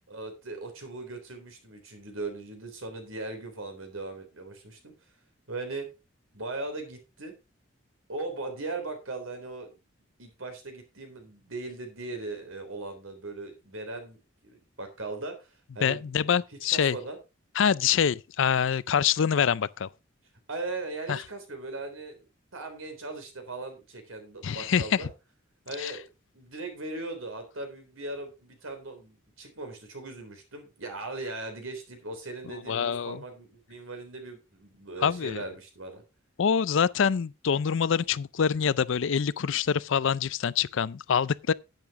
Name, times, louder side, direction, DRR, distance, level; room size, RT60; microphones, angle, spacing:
voice 1, 0.1-4.9 5.5-5.9 6.3-7.3 8.1-9.7 10.2-16.3 16.7-17.2 20.5-22.2 22.5-25.1 25.7-26.0 26.3-36.0, right 2 dB, 80° right, 3.8 m, -39 dB
voice 2, 15.8-17.0 17.6-19.9 21.1-21.2 24.4-25.1 25.8-25.9 32.7-33.2 35.0-35.4 36.4-41.5, left 7 dB, 65° left, 0.4 m, -25 dB
10.5 x 9.1 x 3.6 m
head